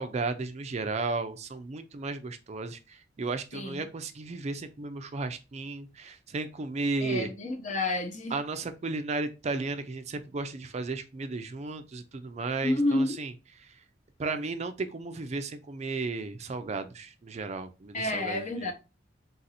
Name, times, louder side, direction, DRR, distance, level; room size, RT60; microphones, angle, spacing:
voice 1, 0.0-7.3 8.3-13.3 14.2-18.7, right 3 dB, 35° right, 0.4 m, -34 dB
voice 2, 3.5-3.9 7.0-8.3 12.6-13.2 17.9-18.7, left 2 dB, 40° left, 0.8 m, -29 dB
3.9 x 2.6 x 4.1 m
head